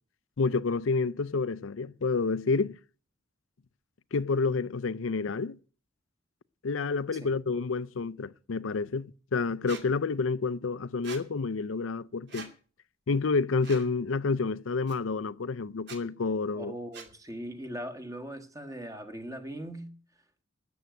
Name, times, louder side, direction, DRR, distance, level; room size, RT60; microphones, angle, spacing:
voice 1, 0.4-2.8 4.1-5.6 6.6-12.5 13.1-16.7, left 4 dB, 80° left, 0.5 m, -29 dB
Squeak, 9.7-9.8 11.0-11.2 12.3-12.5 13.6-13.9 14.9-15.0 15.8-16.0 16.9-17.1, right 5 dB, 60° right, 2.5 m, -43 dB
voice 2, 16.5-19.9, equal, 15° right, 1.6 m, -40 dB
12.5 x 8.0 x 9.2 m
head